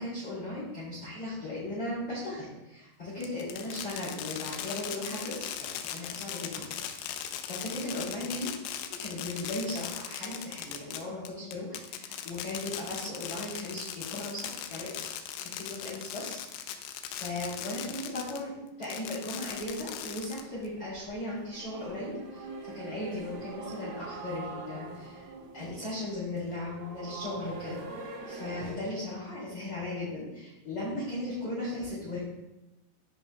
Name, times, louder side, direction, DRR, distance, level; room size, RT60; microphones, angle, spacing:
voice 1, 0.0-7.2 7.4-8.5 8.9-15.0 15.4-16.4 17.0-18.5 18.8-32.2, left 1 dB, 35° left, -10 dB, 2.8 m, -37 dB
Fireworks, 3.2-18.4 18.8-20.7, left 10 dB, 85° left, 2.6 m, -39 dB
sound 1, 19.5-28.7, right 3 dB, 70° right, 2.5 m, -44 dB
12.0 x 5.4 x 2.3 m, 0.98 s
omnidirectional pair, 5.6 m